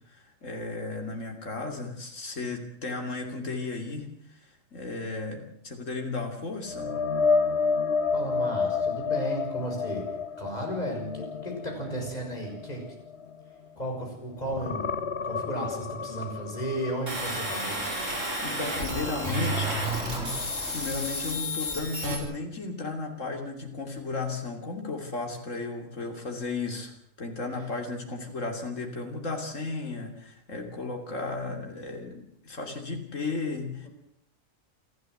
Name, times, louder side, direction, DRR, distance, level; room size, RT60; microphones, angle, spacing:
voice 1, 0.1-6.9 18.4-19.7 20.7-26.9 27.2-33.9, left 3 dB, 75° left, 2 dB, 3.4 m, -34 dB
sound 1, 6.7-14.1 14.4-18.3 18.7-18.9 22.2-22.3, left 5 dB, 55° left, 1.5 m, -30 dB
voice 2, 8.1-10.0 10.4-13.0 13.8-14.9 15.2-17.8 27.5-27.6 33.8-33.9, right 1 dB, 30° left, 1 dB, 6.8 m, -34 dB
sound 2, 17.1-22.2, equal, 75° right, 5.2 m, -32 dB
Car / Accelerating revving vroom, 18.7-20.9, right 3 dB, 5° right, 3.9 m, -33 dB
28.0 x 13.0 x 8.0 m, 0.71 s
omnidirectional pair, 1.3 m